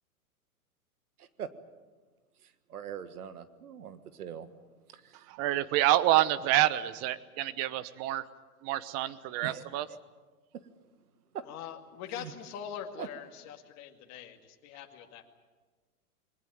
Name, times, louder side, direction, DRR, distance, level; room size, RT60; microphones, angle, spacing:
voice 1, 1.2-1.5 2.4-4.5 4.9-5.3 9.4-9.6 10.5-10.7 11.3-11.5 12.2-12.3 13.0-13.1, right 8 dB, 75° right, 12 dB, 1.7 m, -42 dB
voice 2, 5.3-8.2 8.6-9.9, right 14 dB, 35° right, 16 dB, 1.1 m, -27 dB
voice 3, 11.4-15.2, left 9 dB, 35° left, 3 dB, 2.3 m, -43 dB
21.5 x 19.5 x 9.2 m, 1.3 s
hypercardioid pair, 120°, 45 cm